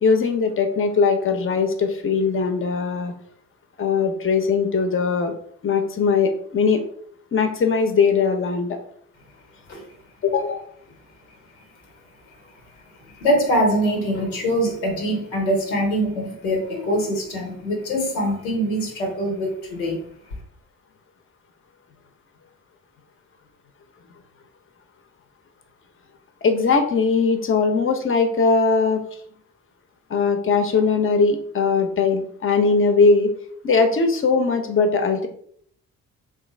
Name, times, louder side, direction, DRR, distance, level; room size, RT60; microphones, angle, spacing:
voice 1, 0.0-3.1 3.8-5.3 5.6-6.8 7.3-8.8 10.2-10.6 26.4-29.0 30.1-33.3 33.6-35.3, left 4 dB, 30° left, 6 dB, 0.7 m, -20 dB
voice 2, 13.1-20.0, equal, 85° left, 1 dB, 0.9 m, -23 dB
3.3 x 2.5 x 3.2 m, 0.63 s
hypercardioid pair, 40°, 41 cm